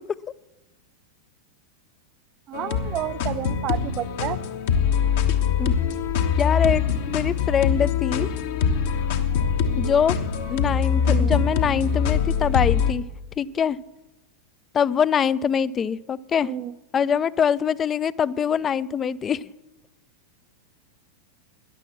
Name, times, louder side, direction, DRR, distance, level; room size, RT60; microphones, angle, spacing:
sound 1, 2.5-12.9, left 7 dB, 55° left, 1.1 m, -23 dB
voice 1, 2.5-4.4 11.1-11.4 16.4-16.7, right 12 dB, 35° right, 13 dB, 0.5 m, -30 dB
voice 2, 6.4-8.3 9.8-10.2 10.5-13.0 13.4-13.8 14.7-16.5 16.9-19.5, left 7 dB, 25° left, 20 dB, 0.4 m, -23 dB
13.0 x 10.5 x 7.2 m, 1.1 s
figure-of-eight pair, 90°, 0 cm